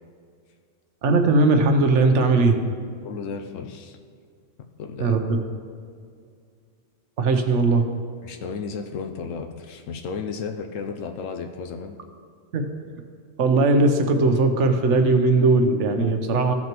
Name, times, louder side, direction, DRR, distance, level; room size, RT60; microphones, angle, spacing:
voice 1, 1.0-2.6 5.0-5.4 7.2-7.8 12.5-12.7 13.4-16.5, right 3 dB, 70° right, 5 dB, 1.1 m, -19 dB
voice 2, 3.0-4.0 4.8-5.2 8.2-12.0, left 5 dB, 85° left, 4 dB, 1.0 m, -33 dB
15.0 x 5.9 x 3.0 m, 2.2 s
omnidirectional pair, 1.3 m